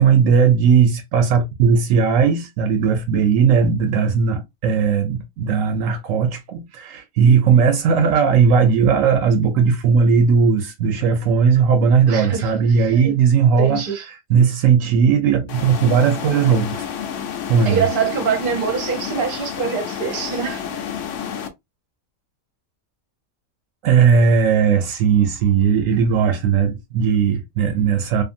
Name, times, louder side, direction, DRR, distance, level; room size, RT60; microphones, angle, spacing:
voice 1, 0.0-13.8 14.3-16.9 17.5-17.9 23.8-28.2, right 6 dB, 75° right, 1.0 m, -17 dB
voice 2, 12.1-13.1 13.6-14.1 17.6-20.8, right 6 dB, 45° right, 0.8 m, -24 dB
sound 1, 15.5-21.5, left 8 dB, 70° left, 0.9 m, -30 dB
2.6 x 2.5 x 2.5 m
omnidirectional pair, 1.4 m